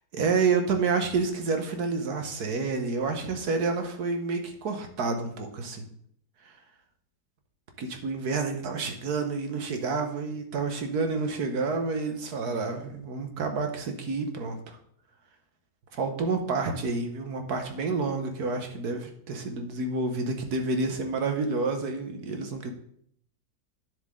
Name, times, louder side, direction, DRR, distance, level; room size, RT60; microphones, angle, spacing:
voice 1, 0.1-5.8 7.8-14.8 15.9-22.7, right 4 dB, 65° right, 5 dB, 1.6 m, -29 dB
9.8 x 7.4 x 3.7 m, 0.67 s
omnidirectional pair, 1.8 m